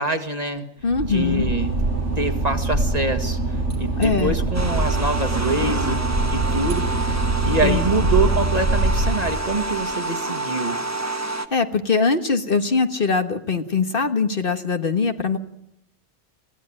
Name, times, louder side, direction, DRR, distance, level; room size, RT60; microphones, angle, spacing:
voice 1, 0.0-0.7 1.1-1.7 2.2-6.0 6.3-7.1 7.4-10.8, right 2 dB, 35° right, 6 dB, 2.0 m, -25 dB
voice 2, 0.8-1.5 3.9-4.4 7.6-8.1 11.2-15.4, left 4 dB, 50° left, 7 dB, 1.5 m, -22 dB
Boat Water vehicle / Engine, 0.8-9.8, right 2 dB, 90° right, 7.5 m, -23 dB
sound 1, 4.5-11.5, right 2 dB, 15° right, 1.2 m, -28 dB
23.5 x 15.5 x 8.8 m, 0.83 s
omnidirectional pair, 1.2 m